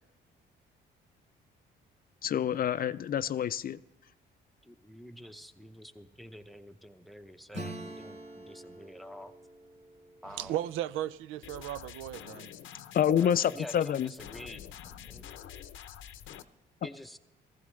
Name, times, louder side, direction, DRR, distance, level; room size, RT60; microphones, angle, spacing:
voice 1, 2.2-3.8 12.9-14.1, left 9 dB, 45° left, 0.4 m, -27 dB
voice 2, 4.6-9.3 10.2-10.6 13.2-15.4 16.8-17.2, equal, ahead, 0.8 m, -48 dB
Acoustic guitar / Strum, 7.5-11.8, right 1 dB, 35° right, 2.3 m, -46 dB
voice 3, 10.2-12.5, right 12 dB, 90° right, 0.4 m, -35 dB
sound 1, 11.4-16.4, left 10 dB, 80° left, 0.7 m, -47 dB
16.0 x 15.0 x 3.2 m
cardioid pair, 90°, 20 cm